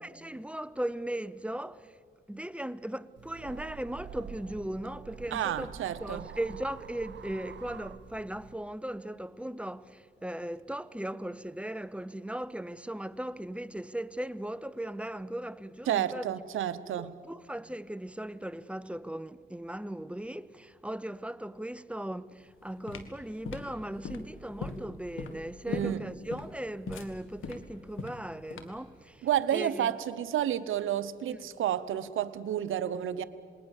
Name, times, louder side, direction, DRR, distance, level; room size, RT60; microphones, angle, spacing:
voice 1, 0.0-1.9 2.3-5.7 6.0-16.2 17.0-29.3 29.5-29.9 31.3-31.4, right 1 dB, 5° right, 0.6 m, -38 dB
sound 1, 3.2-8.6, right 7 dB, 65° right, 0.9 m, -47 dB
voice 2, 5.3-6.3 15.9-17.2 25.7-26.0 29.2-33.2, right 10 dB, 90° right, 0.9 m, -30 dB
sound 2, 22.4-28.9, left 4 dB, 90° left, 1.8 m, -40 dB
27.5 x 20.5 x 7.2 m
cardioid pair, 75°, 20 cm